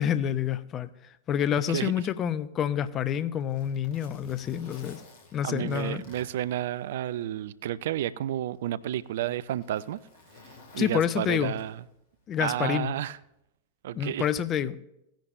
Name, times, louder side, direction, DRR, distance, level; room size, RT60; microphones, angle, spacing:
voice 1, 0.0-5.0 5.3-6.0 10.8-11.5 12.3-12.9 13.9-14.8, left 9 dB, 30° left, 0.5 m, -28 dB
Zipper (clothing), 2.8-7.3 7.7-7.8 8.5-12.0 13.2-13.4, left 3 dB, 50° left, 1.9 m, -53 dB
voice 2, 5.4-10.0 10.7-11.8 12.4-13.2 13.8-14.3, right 12 dB, 55° right, 0.3 m, -31 dB
17.0 x 10.0 x 2.5 m
figure-of-eight pair, 90°, 0 cm